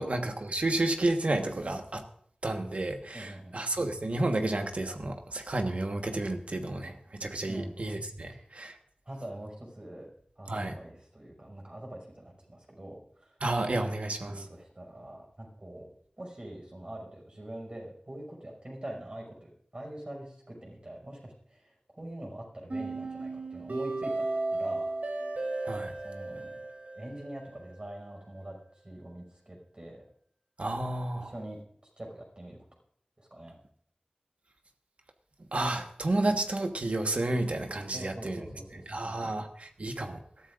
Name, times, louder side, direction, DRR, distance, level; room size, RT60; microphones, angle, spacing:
voice 1, 0.0-2.0 2.4-8.8 10.5-10.7 13.4-14.4 25.6-25.9 30.6-31.3 35.5-38.4 38.9-40.2, right 2 dB, 60° right, 5 dB, 1.4 m, -31 dB
voice 2, 3.1-3.5 7.5-7.8 8.3-8.5 9.1-10.1 10.4-13.4 14.2-15.9 16.2-24.2 24.5-24.9 26.0-26.6 26.9-28.6 28.8-30.0 31.1-31.6 32.0-32.6 33.2-33.6 35.7-35.8 37.9-39.4, right 1 dB, 40° right, -1 dB, 5.6 m, -44 dB
sound 1, 22.7-27.7, right 2 dB, 85° right, 3.5 m, -35 dB
21.0 x 13.5 x 2.6 m, 0.62 s
wide cardioid pair, 65°, 3 cm